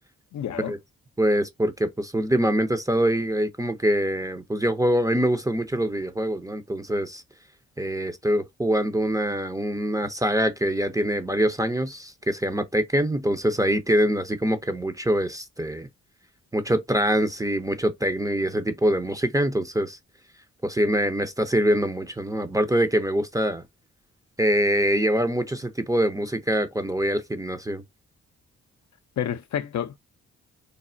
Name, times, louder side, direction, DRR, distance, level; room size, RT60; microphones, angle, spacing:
voice 1, 0.3-0.7 29.2-30.0, left 9 dB, 55° left, 0.5 m, -29 dB
voice 2, 1.2-7.2 7.8-15.9 16.5-20.0 20.6-23.6 24.4-27.8, equal, 10° right, 0.5 m, -24 dB
3.2 x 2.1 x 2.5 m
hypercardioid pair, 40°, 34 cm